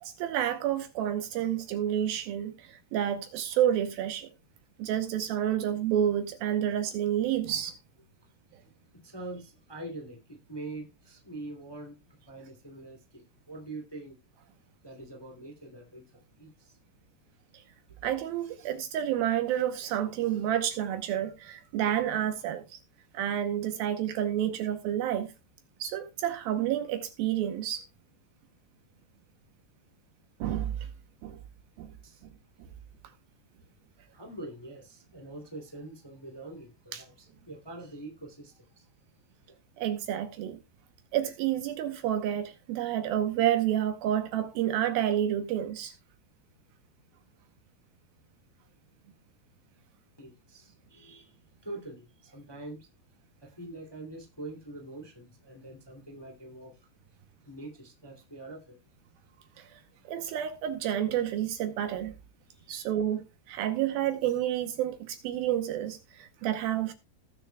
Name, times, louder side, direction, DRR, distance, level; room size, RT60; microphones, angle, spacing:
voice 1, 0.0-4.3 4.8-7.8 17.5-17.6 18.0-22.8 23.1-25.3 25.8-27.8 30.4-30.9 31.2-31.4 31.8-31.9 36.9-37.0 39.8-40.6 41.1-45.9 59.6-59.8 60.1-62.1 62.7-66.9, right 11 dB, 75° right, 2.4 m, -29 dB
voice 2, 8.9-14.1 14.8-16.8 32.0-32.2 34.1-38.9 50.2-51.3 51.6-52.9 53.4-56.9 57.4-58.7 62.5-62.9, right 2 dB, 10° left, 1.5 m, -44 dB
18.5 x 6.7 x 2.3 m
omnidirectional pair, 4.7 m